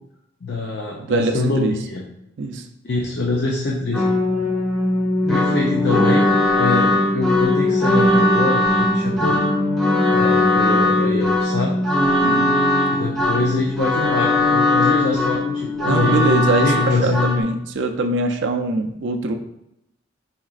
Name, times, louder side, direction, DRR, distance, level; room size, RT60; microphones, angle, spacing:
voice 1, 0.4-2.0 2.8-4.1 5.3-9.5 10.1-11.7 12.9-16.1 16.6-17.2, left 3 dB, 60° left, -1 dB, 0.5 m, -24 dB
voice 2, 1.0-1.7 2.4-2.7 12.2-12.6 15.8-19.3, right 2 dB, 65° right, 5 dB, 0.4 m, -23 dB
sound 1, 3.9-17.4, left 2 dB, ahead, 0.6 m, -19 dB
4.8 x 4.2 x 2.4 m, 0.82 s
head